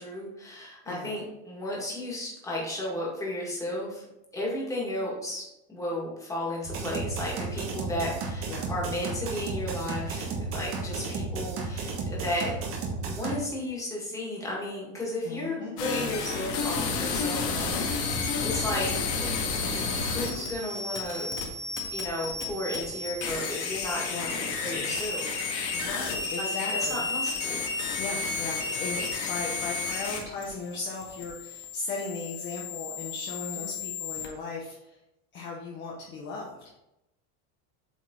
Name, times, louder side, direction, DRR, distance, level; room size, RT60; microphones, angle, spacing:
voice 1, 0.0-4.1 4.3-12.5 13.1-19.3 19.7-21.3 21.9-25.4 26.4-27.7 33.5-33.8, left 1 dB, 10° left, -4 dB, 1.9 m, -34 dB
sound 1, 6.6-13.3, right 4 dB, 35° right, 1.4 m, -33 dB
voice 2, 15.2-15.7 24.1-24.6 25.7-27.1 28.0-35.0 35.3-36.6, left 3 dB, 30° left, -2 dB, 0.9 m, -37 dB
sound 2, 15.8-34.3, left 4 dB, 75° left, 1.9 m, -32 dB
8.3 x 4.0 x 3.8 m, 0.90 s
cardioid pair, 175°, 36 cm